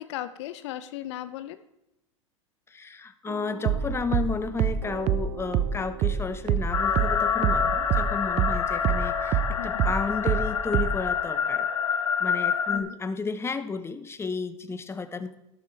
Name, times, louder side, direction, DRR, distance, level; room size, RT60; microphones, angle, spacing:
voice 1, 0.0-1.6 9.5-9.9 12.7-13.0, left 13 dB, 60° left, 13 dB, 0.7 m, -37 dB
voice 2, 2.7-11.7 12.2-15.4, left 4 dB, 15° left, 11 dB, 1.0 m, -32 dB
sound 1, 3.3-8.7, right 8 dB, 85° right, 1.0 m, -44 dB
sound 2, 3.6-8.6 8.8-11.1, right 9 dB, 40° right, 0.7 m, -25 dB
sound 3, 6.7-12.8, left 7 dB, 85° left, 1.0 m, -27 dB
13.0 x 12.0 x 3.4 m, 0.88 s
hypercardioid pair, 95°, 16 cm